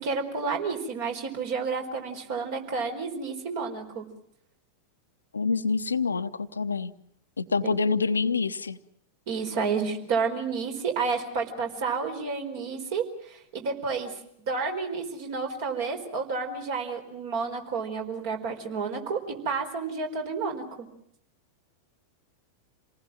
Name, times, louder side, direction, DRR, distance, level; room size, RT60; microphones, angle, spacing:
voice 1, 0.0-4.0 7.6-7.7 9.3-14.1 14.4-19.2 19.4-20.9, right 5 dB, 50° right, 4 dB, 4.6 m, -30 dB
voice 2, 5.3-6.9 7.4-8.8, left 4 dB, 75° left, 11 dB, 0.9 m, -26 dB
28.0 x 19.0 x 7.6 m, 0.71 s
figure-of-eight pair, 90°, 0 cm